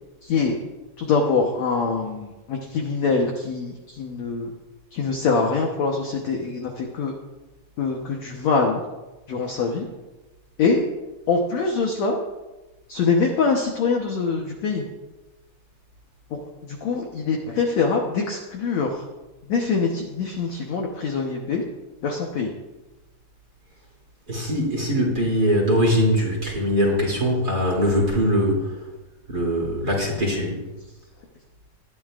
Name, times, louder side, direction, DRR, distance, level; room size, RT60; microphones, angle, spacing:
voice 1, 0.2-0.6 1.0-4.5 4.9-7.1 7.8-8.8 9.3-9.9 10.6-10.8 11.3-12.2 12.9-14.8 16.3-19.0 19.5-21.6 22.0-22.5, left 4 dB, 65° left, 1 dB, 1.7 m, -24 dB
voice 2, 24.3-28.7 29.3-30.6, equal, 25° right, -2 dB, 2.9 m, -22 dB
19.5 x 12.0 x 2.5 m, 1.1 s
omnidirectional pair, 4.5 m